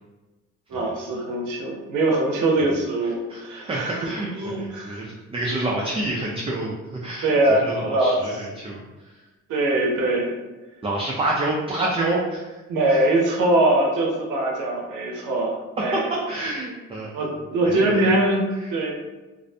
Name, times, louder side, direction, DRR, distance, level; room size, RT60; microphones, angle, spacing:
voice 1, 0.7-4.1 4.4-5.0 7.2-8.2 9.5-10.3 12.7-16.0 17.1-18.4 18.7-18.9, right 2 dB, 85° right, -1 dB, 0.6 m, -22 dB
voice 2, 3.0-6.7 7.0-9.2 10.8-12.6 12.9-13.0 15.8-17.3 17.6-18.1 18.6-18.7, right 2 dB, 20° right, -3 dB, 0.3 m, -28 dB
2.5 x 2.1 x 2.6 m, 1.2 s
cardioid pair, 90°, 30 cm